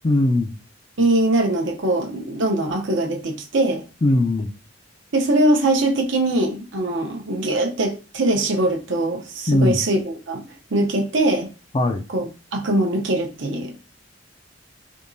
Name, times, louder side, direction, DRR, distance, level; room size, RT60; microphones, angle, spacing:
voice 1, 0.0-0.5 4.0-4.5 9.5-9.8 11.7-12.0, left 1 dB, 30° left, 0.4 m, -19 dB
voice 2, 1.0-3.8 5.1-10.4 10.7-11.5 12.1-13.7, right 1 dB, 75° right, 0.8 m, -22 dB
3.6 x 2.8 x 2.6 m
head